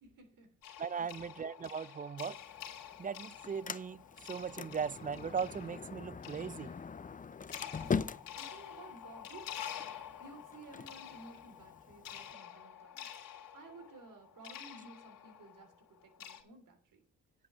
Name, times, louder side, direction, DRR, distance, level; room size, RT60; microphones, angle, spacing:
voice 1, 0.0-1.3 7.7-9.7 10.2-13.1 13.5-17.0, right 3 dB, 60° right, 3.1 m, -55 dB
sound 1, 0.6-16.4, left 10 dB, 70° left, 2.3 m, -49 dB
voice 2, 0.8-2.4 3.0-4.0 4.3-6.7, right 6 dB, 25° right, 0.5 m, -38 dB
Sliding door, 2.3-12.3, left 5 dB, 25° left, 0.6 m, -43 dB
9.6 x 5.4 x 6.7 m
hypercardioid pair, 50°, 35 cm